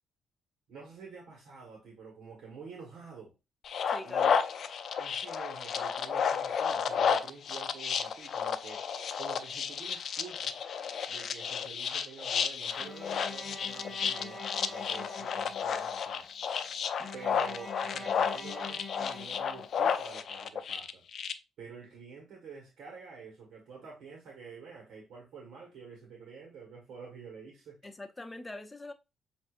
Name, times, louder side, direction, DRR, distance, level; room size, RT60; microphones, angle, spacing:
voice 1, 0.7-3.3 4.0-4.4 5.0-8.9 9.2-10.6 11.1-16.3 17.1-21.0 21.6-27.8, right 5 dB, 75° right, 1.4 m, -48 dB
sound 1, 3.6-21.3, left 7 dB, 60° left, 0.5 m, -32 dB
voice 2, 3.9-4.4 27.8-28.9, left 2 dB, 15° left, 0.7 m, -44 dB
Bowed string instrument, 12.8-16.0 17.0-19.9, left 2 dB, 15° right, 1.0 m, -45 dB
7.6 x 2.7 x 2.5 m
cardioid pair, 90°, 0 cm